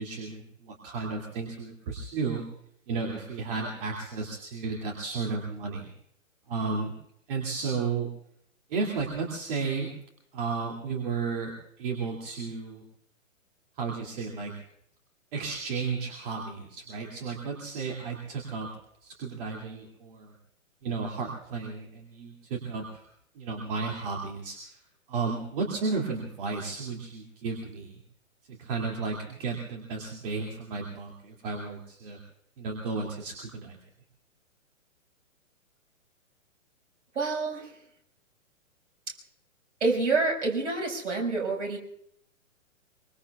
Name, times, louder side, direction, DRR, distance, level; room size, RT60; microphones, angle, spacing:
voice 1, 0.0-2.4 2.9-5.9 6.5-6.9 7.3-8.1 8.7-9.9 10.3-12.8 13.8-14.5 15.3-18.7 19.0-20.3 20.8-23.0 23.3-24.8 25.1-28.0 28.5-32.2 32.6-33.8, right 4 dB, 40° right, -1 dB, 2.6 m, -33 dB
voice 2, 37.1-37.7 39.8-41.8, right 3 dB, 60° right, 1 dB, 6.0 m, -27 dB
25.0 x 24.5 x 2.4 m, 0.69 s
figure-of-eight pair, 125°, 40 cm